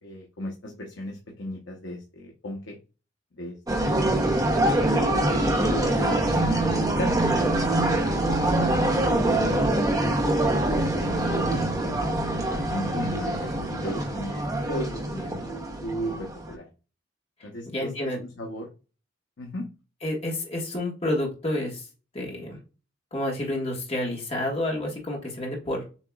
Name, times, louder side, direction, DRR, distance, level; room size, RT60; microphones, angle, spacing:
voice 1, 0.0-2.8 3.3-3.6 3.8-4.3 4.9-7.5 7.9-9.1 9.3-10.2 11.0-15.4 15.8-16.7 17.4-18.7 19.4-19.7, left 1 dB, 75° left, -1 dB, 0.9 m, -36 dB
sound 1, 3.7-16.5, right 1 dB, 20° right, 0.8 m, -24 dB
voice 2, 11.2-11.7 17.6-18.2 20.0-21.8 22.1-22.6 23.1-25.8, left 1 dB, 30° left, -1 dB, 1.5 m, -29 dB
7.1 x 2.9 x 2.3 m, 0.33 s
head